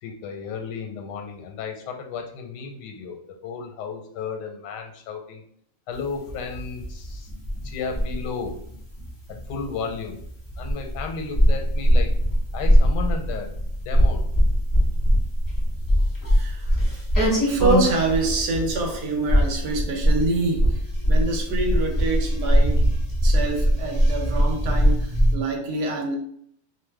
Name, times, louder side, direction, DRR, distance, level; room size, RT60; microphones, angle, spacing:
voice 1, 0.0-5.4 5.9-7.3 7.6-8.6 9.3-10.2 10.6-12.1 12.5-14.2 17.3-17.4, left 5 dB, 85° left, 4 dB, 1.2 m, -33 dB
sound 1, 5.9-25.3, equal, 25° left, 0.4 m, -21 dB
voice 2, 16.3-16.8 17.4-22.9 23.2-26.2, right 2 dB, 80° right, 1 dB, 1.3 m, -27 dB
3.0 x 2.0 x 3.2 m, 0.66 s
omnidirectional pair, 1.8 m